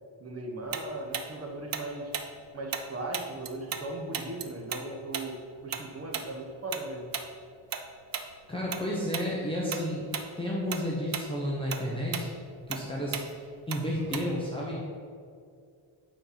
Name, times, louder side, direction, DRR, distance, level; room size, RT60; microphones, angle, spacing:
voice 1, 0.2-2.1 2.5-7.1, right 1 dB, 30° right, 1 dB, 1.1 m, -38 dB
Tick-tock, 0.7-3.9 4.1-8.8 9.1-9.3 9.7-10.3 10.6-14.5, right 7 dB, 45° right, 0.6 m, -36 dB
voice 2, 8.5-10.1 10.4-12.3 12.7-14.8, equal, 10° left, -6 dB, 1.0 m, -32 dB
8.5 x 4.5 x 5.7 m, 2.3 s
wide cardioid pair, 170°, 47 cm